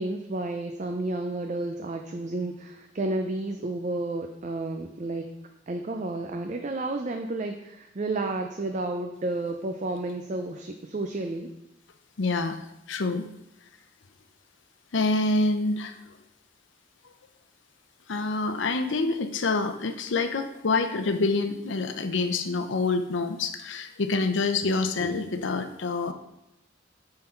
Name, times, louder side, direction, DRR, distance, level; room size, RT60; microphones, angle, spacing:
voice 1, 0.0-5.3 5.7-11.5, right 2 dB, 40° right, 4 dB, 0.5 m, -31 dB
voice 2, 12.2-12.6 12.9-13.3 14.9-16.0 18.1-26.1, left 3 dB, 75° left, 9 dB, 0.7 m, -26 dB
9.4 x 3.9 x 4.4 m, 0.88 s
head